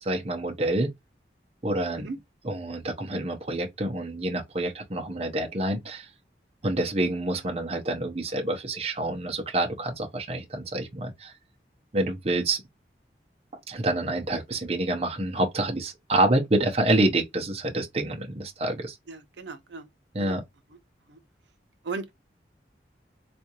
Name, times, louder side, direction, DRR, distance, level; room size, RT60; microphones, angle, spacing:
voice 1, 0.0-0.9 1.6-2.1 2.4-6.1 6.6-11.3 11.9-12.6 13.7-19.0 20.1-20.4, right 2 dB, 35° right, 0.7 m, -27 dB
voice 2, 19.1-19.9 20.2-20.4 21.1-21.2 21.8-22.1, right 4 dB, 75° right, 0.6 m, -36 dB
3.6 x 2.5 x 2.9 m
head